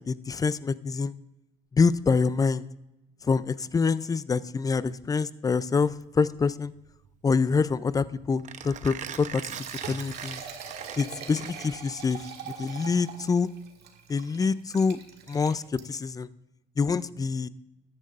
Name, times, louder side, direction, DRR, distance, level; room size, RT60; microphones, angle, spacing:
voice 1, 0.1-1.2 1.7-2.7 3.2-6.7 7.2-9.4 9.9-10.4 11.0-13.5 14.1-15.0 15.3-16.3 16.8-17.5, left 5 dB, 20° left, 17 dB, 0.4 m, -26 dB
Mechanisms, 5.8-11.9, right 8 dB, 45° right, 0.8 m, -42 dB
Liquid, 9.2-16.1, right 7 dB, 75° right, 1.7 m, -43 dB
14.0 x 10.5 x 2.5 m, 0.92 s
cardioid pair, 110°, 17 cm